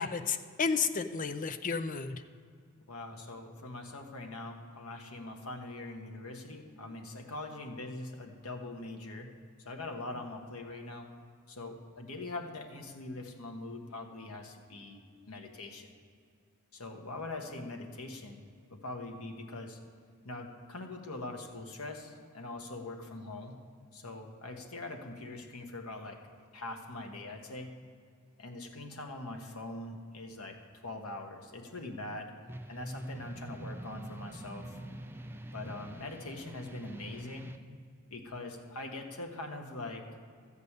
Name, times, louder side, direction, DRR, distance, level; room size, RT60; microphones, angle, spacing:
voice 1, 0.0-2.2, left 5 dB, 40° left, 10 dB, 0.5 m, -32 dB
voice 2, 2.9-9.3 9.6-11.1 11.5-15.0 15.3-15.9 16.7-18.4 18.7-19.8 20.2-23.6 23.9-26.2 26.5-27.7 28.4-30.6 30.8-32.3 32.7-34.7 35.5-37.5 38.1-40.0, left 2 dB, 85° left, 3 dB, 1.5 m, -42 dB
sound 1, 32.5-37.6, right 1 dB, 10° right, 0.5 m, -45 dB
13.0 x 5.4 x 8.2 m, 2.2 s
head